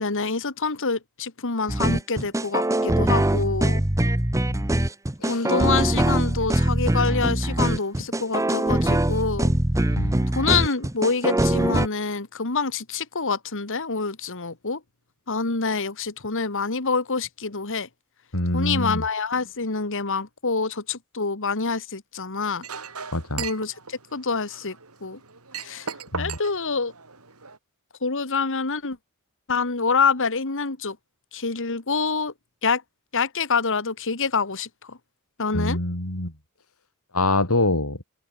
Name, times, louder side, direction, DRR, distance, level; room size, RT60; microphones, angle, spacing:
voice 1, 0.0-3.8 5.3-9.5 10.3-14.8 15.3-17.9 18.5-22.6 23.4-25.2 25.6-25.9 26.2-26.9 28.0-29.0 29.5-31.0 31.3-32.3 32.6-32.8 33.1-35.0 35.4-35.8, left 4 dB, 60° left, 2.0 m, -26 dB
sound 1, 1.7-11.9, right 1 dB, 15° right, 0.9 m, -22 dB
voice 2, 9.9-10.2 18.3-19.0 23.1-23.5 26.1-26.4 35.5-36.3 37.1-38.0, left 2 dB, 80° left, 5.7 m, -25 dB
Chink clink, 22.6-27.6, right 6 dB, 85° right, 4.7 m, -38 dB
open air
head